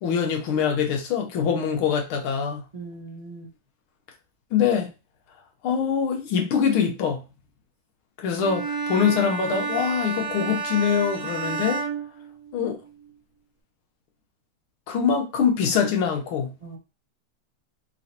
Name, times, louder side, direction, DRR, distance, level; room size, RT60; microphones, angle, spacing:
voice 1, 0.0-2.6 4.5-4.9 5.6-7.2 8.2-11.8 12.5-12.8 14.9-16.5, left 7 dB, 75° left, 4 dB, 1.8 m, -24 dB
voice 2, 2.7-3.5 16.6-16.8, right 3 dB, 25° right, -3 dB, 0.8 m, -39 dB
Bowed string instrument, 8.4-12.9, right 4 dB, 60° right, 0.8 m, -31 dB
4.9 x 3.2 x 2.8 m, 0.29 s
omnidirectional pair, 2.4 m